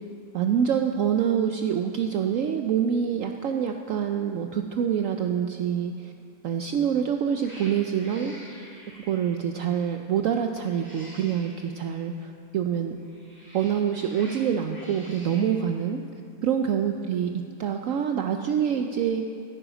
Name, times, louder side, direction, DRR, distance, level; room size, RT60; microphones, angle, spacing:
voice 1, 0.3-6.1 6.4-8.3 9.1-13.0 13.5-16.0 16.4-17.3 17.6-19.2, right 8 dB, 70° right, 5 dB, 0.8 m, -26 dB
Cat, 6.7-7.0 7.4-9.4 10.5-11.6 13.0-15.6, equal, 5° left, 2.0 m, -47 dB
15.5 x 9.1 x 5.0 m, 2.5 s
omnidirectional pair, 1.7 m